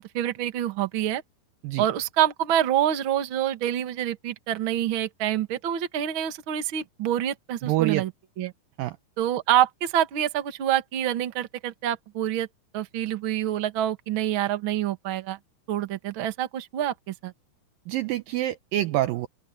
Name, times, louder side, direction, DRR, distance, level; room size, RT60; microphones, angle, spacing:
voice 1, 0.1-1.2 1.8-8.1 8.4-8.5 9.2-12.5 12.7-15.4 15.7-17.3, right 11 dB, 50° right, 1.5 m, -26 dB
voice 2, 7.6-8.0 8.8-9.0 17.9-19.3, right 15 dB, 80° right, 2.1 m, -26 dB
open air
omnidirectional pair, 4.6 m